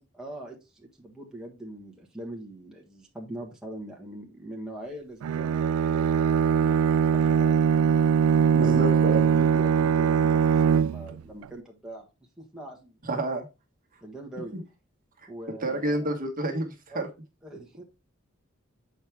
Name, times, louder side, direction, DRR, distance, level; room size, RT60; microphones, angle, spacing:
voice 1, 0.0-7.6 8.5-12.1 12.4-13.0 14.0-14.5 15.3-16.2 16.9-17.1 17.4-17.8, right 1 dB, 5° right, -2 dB, 1.3 m, -42 dB
Bowed string instrument, 5.2-11.2, right 7 dB, 85° right, 0.3 m, -22 dB
voice 2, 8.5-9.3 13.1-13.5 15.6-17.1, right 1 dB, 40° right, 3 dB, 1.4 m, -28 dB
7.4 x 4.5 x 3.4 m, 0.26 s
head